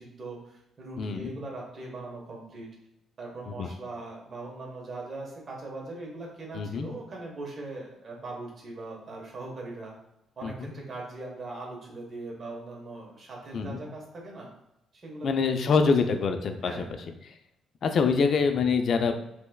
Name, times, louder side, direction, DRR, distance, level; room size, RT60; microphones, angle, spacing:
voice 1, 0.0-2.7 3.2-9.9 10.4-14.5 14.9-15.7 16.6-17.0, right 2 dB, 45° right, -2 dB, 1.2 m, -40 dB
voice 2, 1.0-1.3 3.5-3.7 6.5-6.9 10.4-10.7 13.5-13.8 15.2-16.7 17.8-19.2, left 5 dB, 60° left, 7 dB, 0.4 m, -25 dB
3.3 x 3.1 x 2.3 m, 0.84 s
cardioid pair, 90°, 0 cm